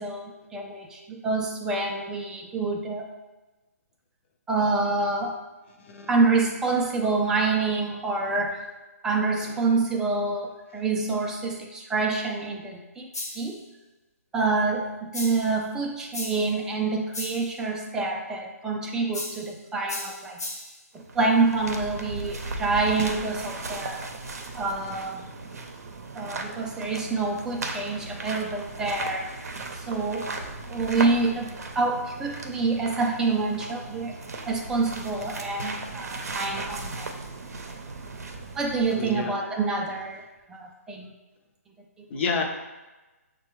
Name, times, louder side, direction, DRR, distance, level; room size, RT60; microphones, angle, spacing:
voice 1, 0.0-3.1 4.5-5.4 6.1-8.6 9.0-13.1 13.4-13.6 14.3-20.4 20.9-24.0 24.6-25.2 26.1-29.3 29.7-30.3 30.7-34.2 34.5-37.2 38.6-40.2 40.5-41.1 42.0-42.1, right 3 dB, 5° right, 1 dB, 0.4 m, -27 dB
sound 1, 13.1-13.6 15.1-15.6 16.1-16.6 17.1-17.5 19.1-19.5 19.9-20.8, left 2 dB, 90° left, 0.9 m, -36 dB
sound 2, 20.9-39.2, right 3 dB, 75° right, 0.6 m, -37 dB
voice 2, 38.9-39.3 42.1-42.4, left 5 dB, 40° left, 3 dB, 0.6 m, -29 dB
6.4 x 2.2 x 3.0 m, 1.1 s
hypercardioid pair, 150°, 8 cm